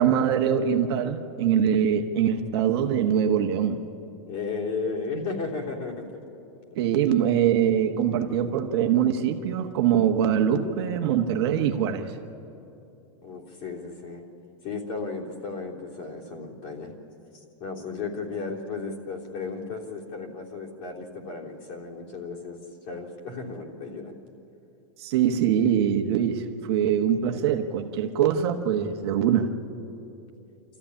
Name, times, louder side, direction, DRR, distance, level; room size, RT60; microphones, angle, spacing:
voice 1, 0.0-3.8 6.8-12.1 25.0-29.5, right 9 dB, 55° right, 5 dB, 1.4 m, -23 dB
voice 2, 4.3-6.1 13.2-14.2 14.6-16.9 17.6-22.6 22.9-24.1, left 4 dB, 40° left, -2 dB, 3.4 m, -34 dB
25.0 x 14.5 x 9.9 m, 2.8 s
supercardioid pair, 165°, 16 cm